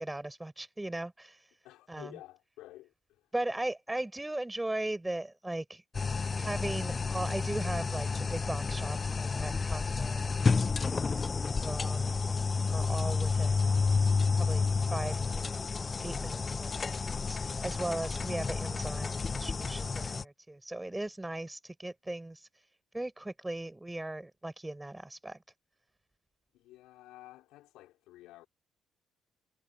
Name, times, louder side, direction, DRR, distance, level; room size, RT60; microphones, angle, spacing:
voice 1, 0.0-1.5 1.9-2.1 3.3-5.8 6.3-10.3 10.8-13.6 14.3-15.5 16.0-22.5 22.9-25.4, right 1 dB, 10° right, 5.5 m, -38 dB
voice 2, 1.6-3.3 26.5-28.5, left 16 dB, 75° left, 5.0 m, -52 dB
sound 1, 5.9-20.2, left 4 dB, 35° left, 0.5 m, -30 dB
supercardioid pair, 60°, 0 cm